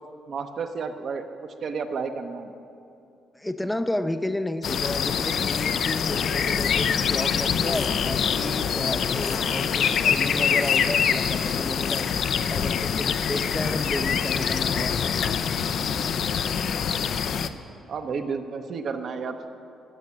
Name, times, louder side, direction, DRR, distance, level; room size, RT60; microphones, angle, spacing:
voice 1, 0.3-1.2 1.6-2.5 17.9-19.4, right 5 dB, 60° right, 6 dB, 0.9 m, -31 dB
voice 2, 3.3-12.1 12.5-15.1, left 1 dB, 10° left, 9 dB, 0.5 m, -32 dB
sound 1, 4.6-17.5, left 7 dB, 65° left, 0.5 m, -25 dB
13.0 x 6.4 x 8.5 m, 2.6 s
cardioid pair, 90°, 0 cm